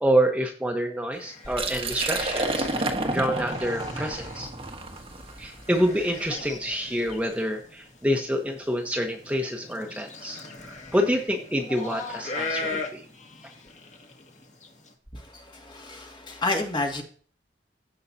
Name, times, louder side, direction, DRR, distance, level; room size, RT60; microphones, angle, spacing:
voice 1, 0.0-2.8 3.1-4.5 5.4-13.0, equal, 10° right, 2 dB, 1.2 m, -27 dB
sound 1, 1.1-14.9, left 3 dB, 45° left, 2.1 m, -40 dB
Liquid, 1.4-7.2, right 2 dB, 35° right, 1.5 m, -31 dB
voice 2, 15.1-17.0, left 2 dB, 25° left, 2 dB, 2.1 m, -30 dB
16.0 x 5.7 x 2.8 m, 0.43 s
head